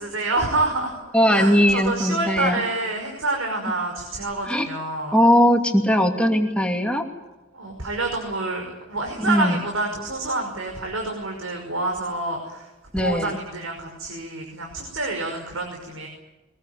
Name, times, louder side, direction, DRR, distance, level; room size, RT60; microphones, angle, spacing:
voice 1, 0.0-1.0 1.3-5.2 7.5-12.7 12.9-16.1, right 2 dB, 80° right, 2 dB, 5.7 m, -27 dB
voice 2, 1.1-2.6 4.5-4.7 5.1-7.1 9.2-9.6 12.9-13.4, equal, 5° left, 3 dB, 2.6 m, -19 dB
23.5 x 21.0 x 9.3 m, 1.1 s
head